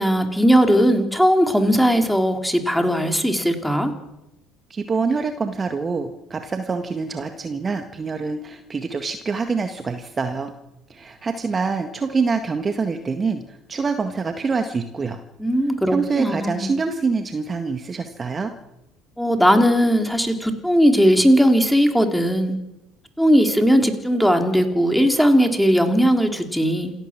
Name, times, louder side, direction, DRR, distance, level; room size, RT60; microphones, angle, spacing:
voice 1, 0.0-3.9 15.4-16.7 19.2-22.6 23.2-26.9, equal, ahead, 5 dB, 3.7 m, -18 dB
voice 2, 4.7-10.5 10.9-15.2 15.9-18.5, right 4 dB, 30° right, 7 dB, 1.8 m, -25 dB
28.0 x 13.5 x 7.6 m, 0.92 s
figure-of-eight pair, 60°, 0 cm